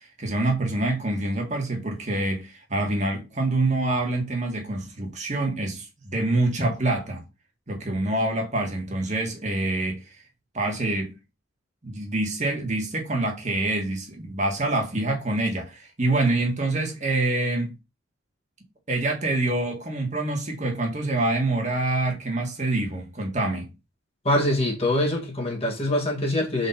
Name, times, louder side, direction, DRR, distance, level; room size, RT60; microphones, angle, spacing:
voice 1, 0.2-7.2 7.7-10.1 10.5-11.1 11.8-17.7 18.9-23.7, right 2 dB, 35° right, 1.7 m, -26 dB
voice 2, 24.2-26.7, left 1 dB, 30° left, 1.8 m, -24 dB
5.1 x 4.3 x 5.6 m
head